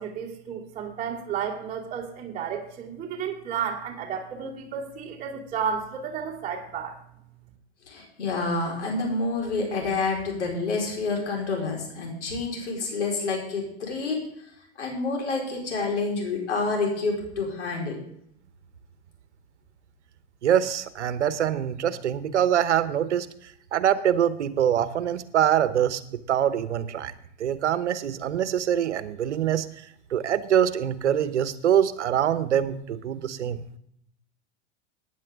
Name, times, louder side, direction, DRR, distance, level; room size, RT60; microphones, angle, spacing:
voice 1, 0.0-7.0, right 7 dB, 25° right, -6 dB, 2.8 m, -32 dB
voice 2, 7.9-14.2 14.8-18.0, left 3 dB, 90° left, 0 dB, 4.6 m, -28 dB
voice 3, 20.4-23.3 23.7-26.0 26.3-27.1 27.4-29.6 30.1-33.6, right 10 dB, 90° right, 13 dB, 1.1 m, -24 dB
15.5 x 10.0 x 3.7 m, 0.71 s
hypercardioid pair, 110°, 34 cm